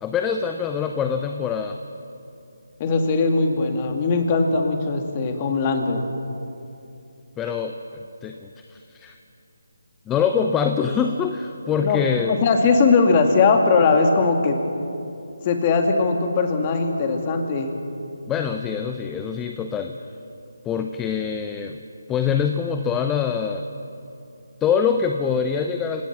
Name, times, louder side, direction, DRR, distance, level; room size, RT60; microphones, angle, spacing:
voice 1, 0.0-1.8 7.4-9.2 10.1-12.4 18.3-20.0 20.6-21.8 22.1-23.6 24.6-26.0, left 7 dB, 10° left, 5 dB, 0.7 m, -24 dB
voice 2, 2.8-6.0 11.8-14.6 15.4-17.8, left 4 dB, 25° left, 4 dB, 2.3 m, -20 dB
29.0 x 17.0 x 6.1 m, 2.7 s
figure-of-eight pair, 160°, 0 cm